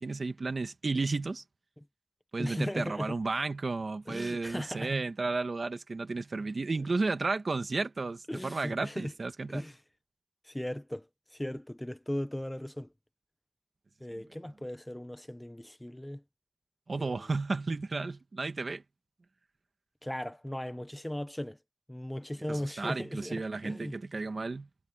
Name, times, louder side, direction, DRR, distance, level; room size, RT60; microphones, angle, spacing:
voice 1, 0.0-1.4 2.3-9.6 16.9-18.8 22.5-24.7, right 3 dB, 80° right, 1.5 m, -33 dB
voice 2, 2.4-3.2 4.1-5.0 8.3-9.1 9.5-9.8 10.4-12.9 14.0-16.2 17.0-17.2 20.0-21.6 21.9-24.0, left 1 dB, 15° left, 1.0 m, -37 dB
wide cardioid pair, 55°, 0 cm